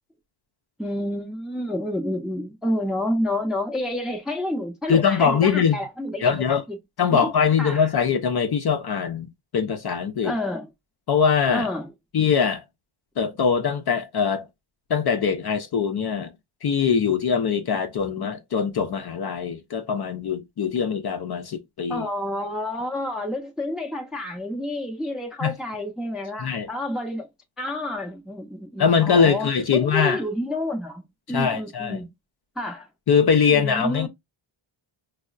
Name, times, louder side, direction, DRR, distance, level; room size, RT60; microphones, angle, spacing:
voice 1, 0.8-6.8 7.1-7.3 7.6-7.9 10.2-10.7 11.5-11.9 21.9-27.3 27.6-32.1 32.6-32.9 33.5-34.1, left 1 dB, ahead, 0.5 m, -29 dB
voice 2, 4.9-5.8 6.2-6.6 7.0-10.3 11.1-11.7 12.1-12.6 13.2-14.5 14.9-16.3 16.6-22.1 25.4-25.5 26.4-26.7 28.8-30.2 31.3-32.0 33.1-34.1, left 6 dB, 50° left, 0.5 m, -22 dB
5.2 x 2.0 x 2.3 m
wide cardioid pair, 160°, 50 cm